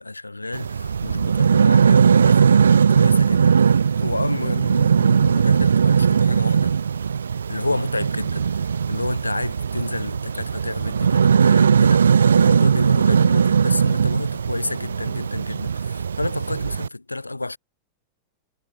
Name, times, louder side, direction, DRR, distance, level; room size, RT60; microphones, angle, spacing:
voice 1, 0.0-6.8 7.5-17.6, left 2 dB, 85° left, 2.9 m, -30 dB
sound 1, 0.5-16.9, right 6 dB, 70° right, 0.3 m, -19 dB
figure-of-eight pair, 90°, 0 cm